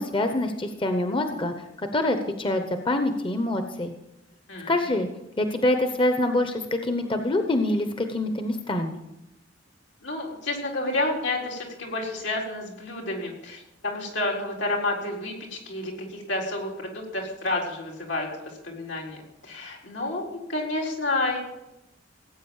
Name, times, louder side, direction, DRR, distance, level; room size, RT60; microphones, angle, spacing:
voice 1, 0.0-1.5 1.9-3.9 4.7-5.1 5.4-9.0, left 1 dB, 25° left, 6 dB, 1.0 m, -25 dB
voice 2, 4.5-4.8 10.0-20.2 20.5-21.4, left 2 dB, 80° left, -1 dB, 4.4 m, -30 dB
17.5 x 9.0 x 7.3 m, 0.91 s
head